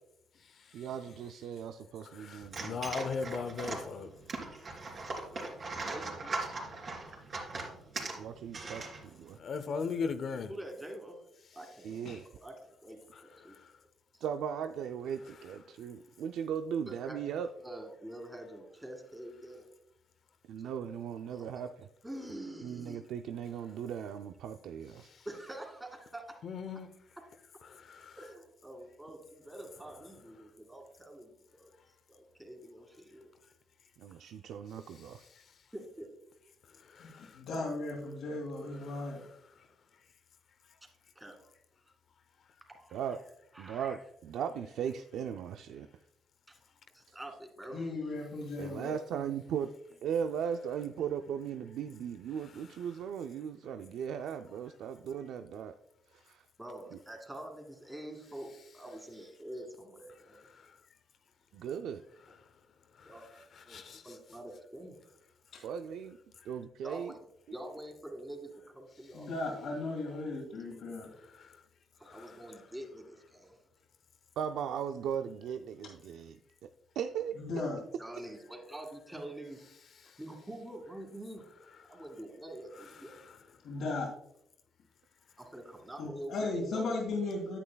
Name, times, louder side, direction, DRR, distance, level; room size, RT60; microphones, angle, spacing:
voice 1, 0.7-2.8 8.2-9.4 11.8-12.2 14.2-17.5 20.5-21.9 22.6-25.1 34.0-35.3 42.9-43.2 43.6-45.9 47.1-47.2 48.6-49.7 50.0-55.7 56.2-56.5 56.9-57.0 61.5-62.0 65.6-66.2 66.5-67.1 74.4-76.7 77.0-77.4, right 8 dB, 80° right, 0.3 m, -37 dB
voice 2, 2.0-4.1 9.4-10.5 13.4-13.7 25.0-25.2 26.4-26.9 27.7-28.2 35.3-35.4 36.8-37.4 60.5-60.7 63.0-63.1 63.7-64.0 71.3-71.6 72.1-72.4 80.0-80.1 83.1-83.4, left 5 dB, 60° left, 0.7 m, -39 dB
sound 1, 2.4-9.3, right 3 dB, 45° right, 2.7 m, -40 dB
voice 3, 5.2-6.4 10.5-11.2 11.5-12.1 12.4-13.5 14.1-14.2 16.9-17.2 17.6-19.6 20.6-20.7 21.3-21.6 22.0-23.1 25.2-26.4 27.2-27.3 28.2-31.7 32.1-33.3 35.7-36.1 40.8-40.9 41.2-41.4 42.7-43.2 43.5-44.0 46.5-46.6 46.9-47.9 56.6-60.5 63.1-63.2 63.7-65.0 66.8-67.2 67.5-69.8 70.9-71.0 72.0-73.6 78.0-79.6 80.2-81.4 81.9-83.1 85.5-86.9, right 1 dB, 10° right, 2.2 m, -46 dB
voice 4, 37.0-39.2 47.7-49.0 65.5-65.6 69.1-71.1 77.4-77.8 83.6-84.1 86.0-87.6, left 2 dB, 80° left, 1.9 m, -36 dB
9.9 x 8.5 x 2.3 m
cardioid pair, 90°, 0 cm